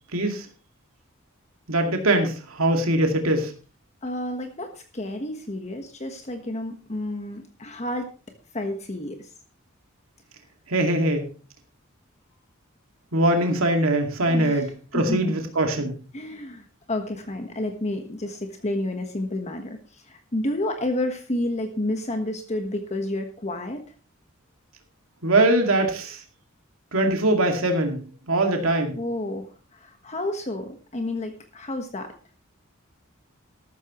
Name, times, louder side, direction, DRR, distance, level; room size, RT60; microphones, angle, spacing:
voice 1, 0.1-0.5 1.7-3.5 10.7-11.3 13.1-14.7 14.9-16.0 25.2-26.2 26.9-28.0 28.3-29.0, right 1 dB, 90° right, 3 dB, 2.3 m, -22 dB
voice 2, 4.0-8.1 8.5-9.3 14.2-14.6 14.9-15.4 16.1-23.8 28.9-32.1, left 1 dB, 35° left, 5 dB, 1.3 m, -30 dB
13.5 x 13.0 x 3.1 m, 0.36 s
head